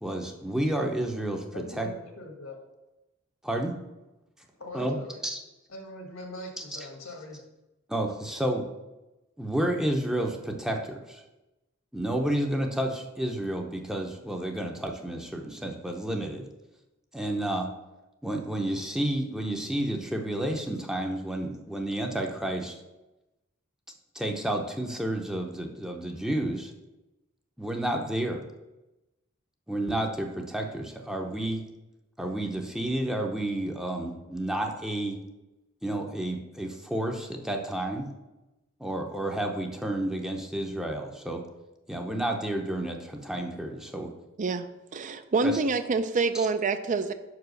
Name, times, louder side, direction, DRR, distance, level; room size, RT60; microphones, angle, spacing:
voice 1, 0.0-1.4 1.8-1.9 3.4-3.7 4.7-5.0 5.2-5.4 6.6-6.9 7.9-8.7 9.4-11.2 11.9-16.5 17.1-17.7 18.2-22.8 24.1-26.7 27.6-28.4 29.7-31.6 32.2-35.2 35.8-38.1 38.8-41.4 41.9-44.1 45.4-45.6 46.3-46.5, right 1 dB, 5° right, 2 dB, 0.7 m, -30 dB
voice 2, 1.5-2.6 4.6-5.2 5.7-7.4, left 1 dB, 75° left, 3 dB, 1.5 m, -42 dB
voice 3, 44.9-47.1, right 4 dB, 40° right, 10 dB, 0.4 m, -26 dB
5.6 x 4.8 x 6.4 m, 0.99 s
head